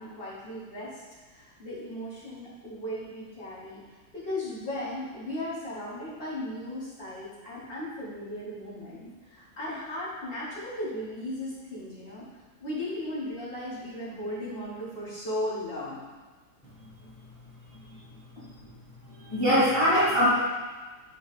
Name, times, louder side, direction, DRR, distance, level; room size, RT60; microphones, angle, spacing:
voice 1, 0.0-12.2 12.6-16.0 18.4-18.5, left 1 dB, 35° left, -9 dB, 2.4 m, -36 dB
voice 2, 17.7-18.0 19.1-20.3, equal, 15° left, -11 dB, 1.9 m, -24 dB
7.8 x 5.2 x 3.5 m, 1.3 s
omnidirectional pair, 1.8 m